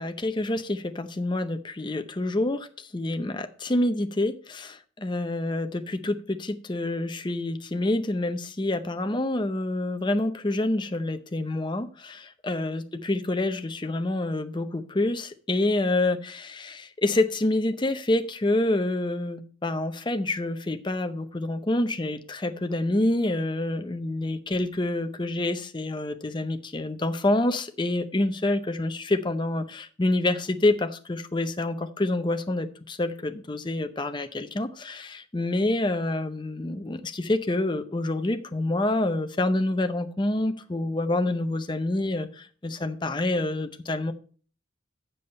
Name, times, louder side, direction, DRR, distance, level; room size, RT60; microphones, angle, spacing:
voice 1, 0.0-44.1, left 2 dB, 20° left, 0.6 m, -27 dB
7.6 x 6.9 x 5.2 m
head